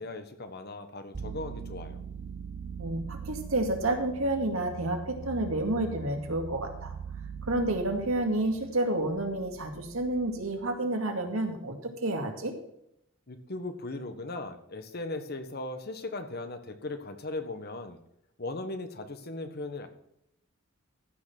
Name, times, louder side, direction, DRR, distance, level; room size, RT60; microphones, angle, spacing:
voice 1, 0.0-2.0 13.3-18.0 18.4-19.9, left 2 dB, 50° left, 8 dB, 1.3 m, -38 dB
sound 1, 1.1-10.7, right 6 dB, 55° right, 0.5 m, -42 dB
voice 2, 2.8-6.9 7.4-12.5, right 1 dB, 80° right, 4 dB, 2.2 m, -30 dB
14.5 x 5.9 x 6.0 m, 0.79 s
head